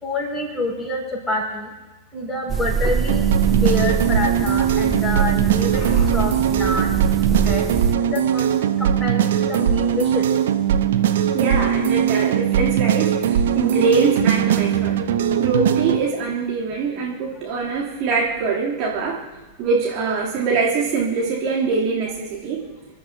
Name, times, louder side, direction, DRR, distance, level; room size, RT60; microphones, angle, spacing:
voice 1, 0.0-1.0 1.3-1.7 2.1-3.2 3.5-6.9 7.5-7.6 8.0-8.5 8.8-10.2, left 2 dB, 10° left, -2 dB, 6.0 m, -27 dB
sound 1, 2.5-8.0, right 6 dB, 20° right, 0.5 m, -24 dB
sound 2, 3.1-16.0, right 9 dB, 60° right, 1.0 m, -20 dB
voice 2, 11.3-15.0 15.4-19.2 19.6-22.7, right 4 dB, 40° right, -4 dB, 3.2 m, -23 dB
28.0 x 12.5 x 2.9 m, 1.2 s
figure-of-eight pair, 90°, 0 cm